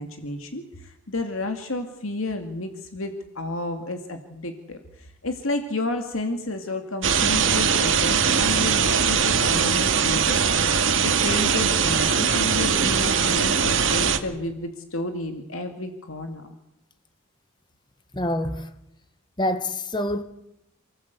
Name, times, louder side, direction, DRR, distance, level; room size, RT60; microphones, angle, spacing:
voice 1, 0.0-16.5, left 2 dB, 75° left, 2.4 m, -31 dB
sound 1, 7.0-14.2, right 6 dB, 65° right, 2.0 m, -21 dB
voice 2, 18.1-18.7 19.4-20.2, left 1 dB, 20° left, 1.3 m, -26 dB
28.5 x 19.0 x 8.3 m
head